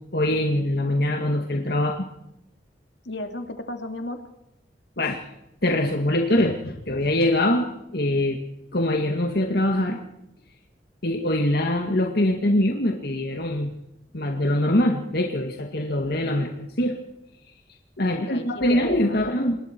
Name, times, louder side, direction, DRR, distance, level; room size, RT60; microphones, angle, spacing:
voice 1, 0.1-2.1 5.0-5.2 5.6-8.4 8.7-10.0 11.0-13.7 14.1-17.0 18.0-19.6, left 1 dB, 60° left, 2 dB, 2.0 m, -23 dB
voice 2, 3.0-4.2 18.3-19.2, left 1 dB, 75° left, 5 dB, 2.6 m, -34 dB
27.5 x 21.0 x 4.6 m, 0.85 s
head